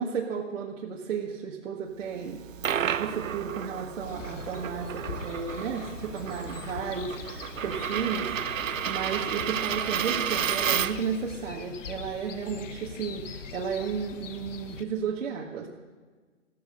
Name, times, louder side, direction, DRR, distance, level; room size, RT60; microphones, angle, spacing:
voice 1, 0.0-2.5 3.0-15.7, right 6 dB, 75° right, -2 dB, 1.9 m, -33 dB
Coin (dropping), 2.3-11.2, right 9 dB, 90° right, 0.8 m, -32 dB
sound 1, 4.0-14.8, left 6 dB, 75° left, 1.2 m, -42 dB
15.0 x 14.0 x 6.6 m, 1.4 s
hypercardioid pair, 155°, 38 cm